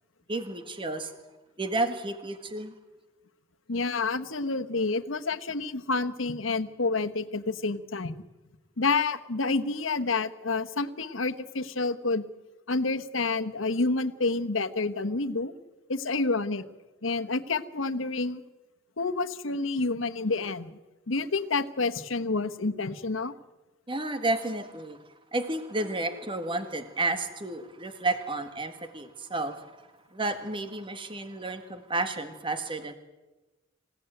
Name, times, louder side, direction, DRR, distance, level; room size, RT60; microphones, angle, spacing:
voice 1, 0.3-1.1 1.6-2.7 23.9-25.0 25.3-29.7 30.1-32.9, right 2 dB, 25° right, 8 dB, 1.7 m, -31 dB
voice 2, 3.7-8.1 8.8-12.2 12.7-15.5 15.9-16.6 17.0-18.4 19.0-20.7 21.1-23.3, left 3 dB, 85° left, 10 dB, 1.3 m, -29 dB
26.5 x 16.5 x 9.2 m, 1.1 s
head